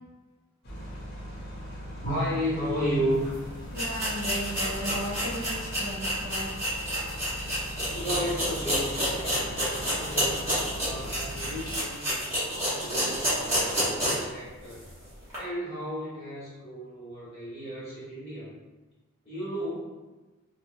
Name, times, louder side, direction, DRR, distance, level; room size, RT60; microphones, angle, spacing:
sound 1, 0.6-11.8, equal, 50° left, 0.7 m, -40 dB
voice 1, 2.0-3.3 7.9-12.3 12.7-14.8 15.4-18.5 19.2-19.9, equal, 30° left, -9 dB, 1.4 m, -33 dB
sound 2, 3.2-3.3 3.7-14.3 14.7-14.8 15.3-15.4, equal, 10° right, 1.2 m, -29 dB
voice 2, 3.7-6.5, equal, 40° right, -4 dB, 0.4 m, -35 dB
3.2 x 2.0 x 2.6 m, 1.2 s
head